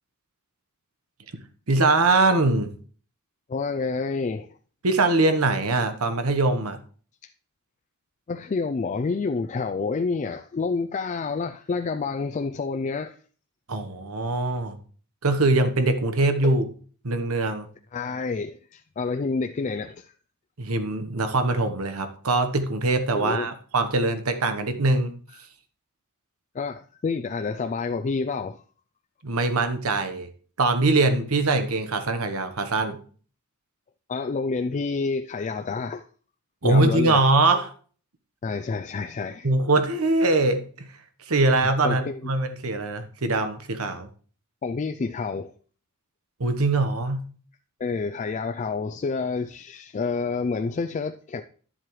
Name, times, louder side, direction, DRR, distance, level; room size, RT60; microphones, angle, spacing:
voice 1, 1.7-2.7 4.8-6.8 13.7-14.8 15.2-16.6 17.0-17.7 20.6-25.1 29.2-30.3 30.6-33.0 36.6-37.7 39.4-40.9 41.3-44.1 46.4-47.2, right 2 dB, 85° right, 1.1 m, -22 dB
voice 2, 3.5-4.5 8.3-13.2 16.4-16.5 17.9-20.1 23.2-23.5 26.5-28.6 34.1-36.0 36.6-37.3 38.4-39.5 41.8-42.3 44.6-45.5 47.8-51.4, left 4 dB, 35° left, 0.4 m, -28 dB
11.5 x 7.5 x 3.1 m
head